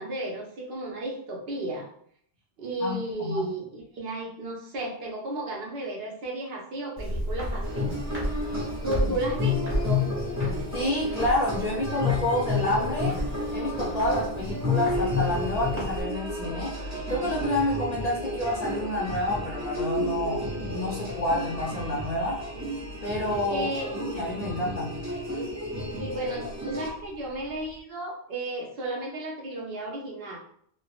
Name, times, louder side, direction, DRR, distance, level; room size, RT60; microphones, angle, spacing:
voice 1, 0.0-1.9 2.6-8.3 8.8-10.1 22.5-22.7 23.5-23.9 25.9-30.4, right 1 dB, 70° right, -1 dB, 0.9 m, -34 dB
voice 2, 2.8-3.5 9.0-9.1 10.7-13.2 13.5-16.8 17.1-22.4 23.0-24.9, left 1 dB, 55° left, -2 dB, 0.5 m, -29 dB
Walk footsteps, 7.0-16.0, equal, 15° right, 0.9 m, -34 dB
sound 1, 7.6-26.9, left 2 dB, 30° right, 0.3 m, -31 dB
sound 2, 14.9-27.8, left 1 dB, 50° right, 0.8 m, -42 dB
3.3 x 2.0 x 2.4 m, 0.65 s
omnidirectional pair, 1.1 m